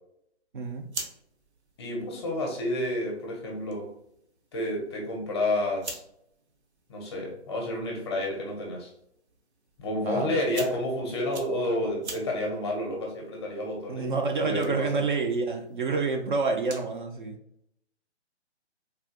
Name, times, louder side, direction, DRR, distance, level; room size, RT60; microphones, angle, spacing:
voice 1, 0.5-0.9 10.0-10.3 13.9-17.4, right 4 dB, 45° right, 4 dB, 0.5 m, -28 dB
sound 1, 0.6-17.0, right 3 dB, 75° right, 0.9 m, -47 dB
voice 2, 1.8-3.9 4.5-6.0 6.9-8.9 9.8-15.0, left 1 dB, 25° left, 0 dB, 0.6 m, -30 dB
3.4 x 2.4 x 2.4 m, 0.74 s
hypercardioid pair, 145°, 34 cm